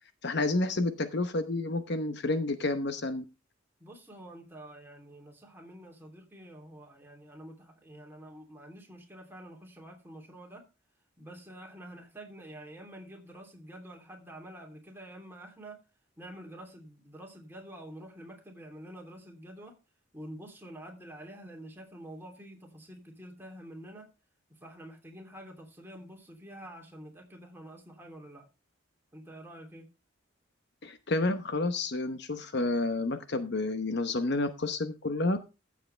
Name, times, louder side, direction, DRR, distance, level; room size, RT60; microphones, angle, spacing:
voice 1, 0.2-3.2 30.8-35.4, left 2 dB, 55° left, 9 dB, 0.9 m, -30 dB
voice 2, 3.8-10.6 11.2-15.8 16.2-19.7 20.1-24.1 24.5-28.5 29.1-29.9, right 1 dB, 10° right, 0 dB, 3.0 m, -48 dB
15.0 x 7.7 x 3.3 m, 0.28 s
head